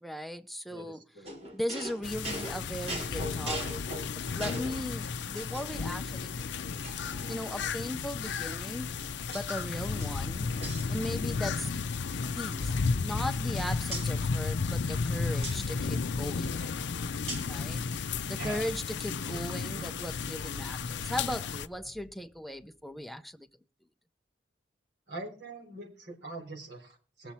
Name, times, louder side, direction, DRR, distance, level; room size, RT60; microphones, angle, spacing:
voice 1, 0.0-1.0 1.5-6.9 7.3-9.0 9.3-10.5 10.9-11.7 12.3-17.1 17.5-17.8 18.3-23.5, left 1 dB, ahead, 0.5 m, -38 dB
voice 2, 0.7-1.4 8.2-8.6 18.4-18.7 19.3-19.9 25.1-27.3, right 2 dB, 60° right, 3.7 m, -43 dB
sound 1, 1.2-4.8 5.4-6.0 6.4-6.5 6.8-7.9 8.7-9.6 9.9-11.4 11.7-11.9 12.2-13.5 13.9-14.1 15.4-15.6 17.3-17.6, right 1 dB, 35° right, 2.3 m, -41 dB
sound 2, 2.0-21.7, left 5 dB, 70° left, 0.5 m, -33 dB
sound 3, 21.7-23.2, left 2 dB, 45° left, 0.9 m, -53 dB
20.0 x 7.1 x 4.2 m
head